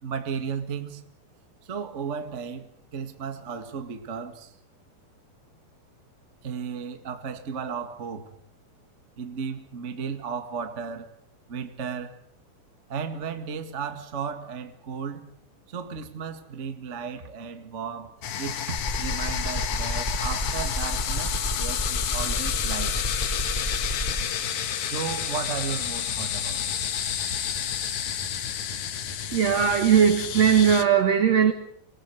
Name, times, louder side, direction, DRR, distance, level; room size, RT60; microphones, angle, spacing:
voice 1, 0.0-1.1 1.6-2.7 2.9-4.6 6.4-8.3 9.2-11.1 11.5-12.2 12.9-15.3 15.7-23.0 24.8-26.8, right 6 dB, 45° right, 0.9 m, -34 dB
sound 1, 18.2-30.8, left 8 dB, 60° left, 2.3 m, -30 dB
sound 2, 18.8-24.2, equal, 10° left, 2.4 m, -30 dB
voice 2, 29.3-31.5, right 8 dB, 70° right, 1.5 m, -19 dB
26.0 x 20.5 x 8.0 m
omnidirectional pair, 5.0 m